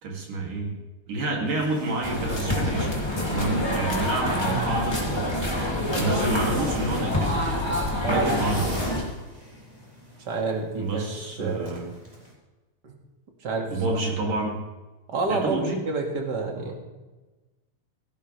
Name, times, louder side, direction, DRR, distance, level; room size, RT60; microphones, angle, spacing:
voice 1, 0.0-0.8 1.1-3.0 3.3-5.3 5.9-7.5 8.0-8.9 10.8-11.9 13.7-14.6 15.3-15.8, right 2 dB, 70° right, 0 dB, 4.5 m, -28 dB
sound 1, 1.5-12.3, equal, 10° right, 4.9 m, -41 dB
sound 2, 2.0-9.0, left 1 dB, 10° left, 2.5 m, -26 dB
voice 2, 10.3-11.1 11.4-11.7 12.8-12.9 13.4-14.0 15.1-16.7, right 3 dB, 35° right, 1 dB, 2.6 m, -29 dB
17.0 x 17.0 x 3.5 m, 1.2 s
omnidirectional pair, 3.9 m